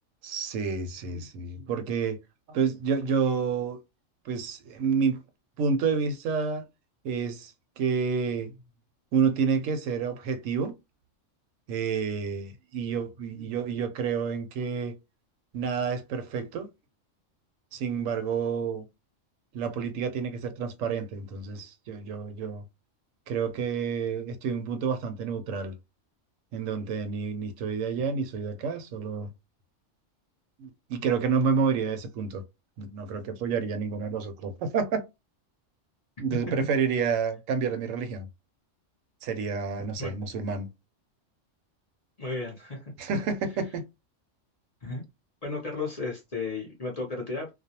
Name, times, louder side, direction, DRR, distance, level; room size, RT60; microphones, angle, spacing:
voice 1, 0.2-2.2 2.5-3.8 4.3-5.2 5.6-6.7 7.0-8.5 9.1-10.7 11.7-14.9 15.5-16.7 17.7-18.8 19.5-22.6 23.3-25.7 26.5-29.3 30.6-32.4 32.8-35.0 36.2-38.3 39.2-40.7 43.0-43.8, right 6 dB, 85° right, 0.9 m, -29 dB
voice 2, 42.2-42.9 44.8-45.0 45.4-47.5, left 3 dB, 40° left, 0.6 m, -34 dB
2.4 x 2.1 x 2.7 m
omnidirectional pair, 1.3 m